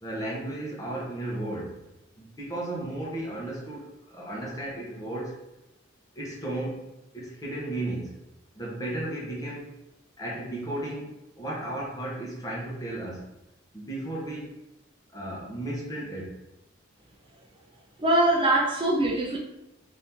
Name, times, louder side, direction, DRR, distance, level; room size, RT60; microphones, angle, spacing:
voice 1, 0.0-1.8 2.2-5.4 6.2-6.9 7.1-8.1 8.5-9.7 10.2-13.3 13.7-14.5 15.1-16.4, right 1 dB, 20° left, -4 dB, 0.9 m, -34 dB
voice 2, 18.0-19.4, right 1 dB, 25° right, -2 dB, 0.4 m, -22 dB
2.9 x 2.7 x 3.5 m, 0.89 s
head